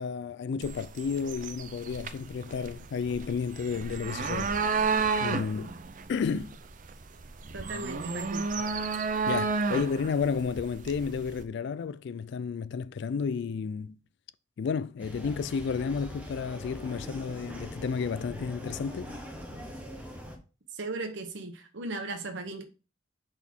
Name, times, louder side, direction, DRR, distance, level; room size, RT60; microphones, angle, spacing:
voice 1, 0.0-4.6 5.2-5.7 6.1-6.5 9.3-14.0 14.6-19.2, left 5 dB, 60° left, 0.3 m, -32 dB
sound 1, 0.6-11.4, right 4 dB, 40° right, 0.5 m, -32 dB
voice 2, 7.5-8.5 20.7-22.6, right 2 dB, 60° right, 1.0 m, -37 dB
sound 2, 15.0-20.4, equal, 5° right, 1.1 m, -42 dB
5.4 x 4.2 x 4.4 m
head